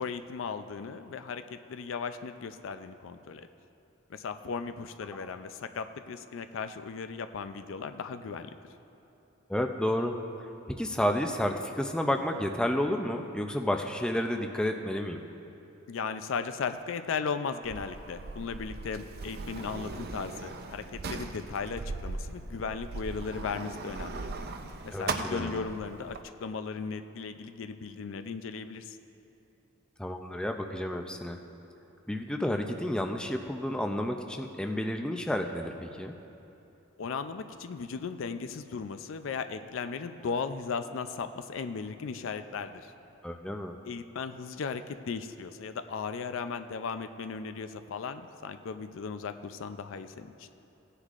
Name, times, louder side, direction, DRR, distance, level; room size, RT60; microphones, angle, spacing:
voice 1, 0.0-3.5 4.1-8.5 15.9-24.3 24.8-29.0 37.0-42.9 43.9-50.5, left 5 dB, 70° left, 9 dB, 0.4 m, -36 dB
voice 2, 9.5-15.2 24.9-25.7 30.0-31.4 32.1-36.2 43.2-43.8, left 1 dB, 5° left, 4 dB, 0.4 m, -31 dB
Sliding door, 17.6-26.2, right 3 dB, 50° right, 0.5 m, -39 dB
16.5 x 9.8 x 2.5 m, 3.0 s
head